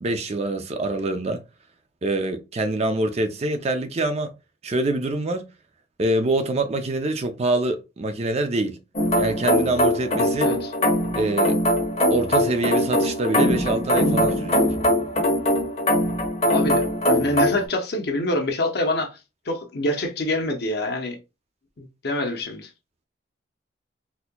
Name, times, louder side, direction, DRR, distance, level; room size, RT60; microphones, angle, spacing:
voice 1, 0.0-1.4 2.0-4.3 4.6-5.5 6.0-8.8 9.2-10.5 11.1-11.6 12.1-14.7, right 2 dB, 35° right, 0.5 m, -25 dB
sound 1, 9.0-17.6, equal, 35° left, 1.1 m, -21 dB
voice 2, 10.4-10.7 16.4-19.2 19.5-21.2 21.8-22.7, left 1 dB, 60° left, 0.8 m, -26 dB
4.2 x 2.8 x 2.2 m
head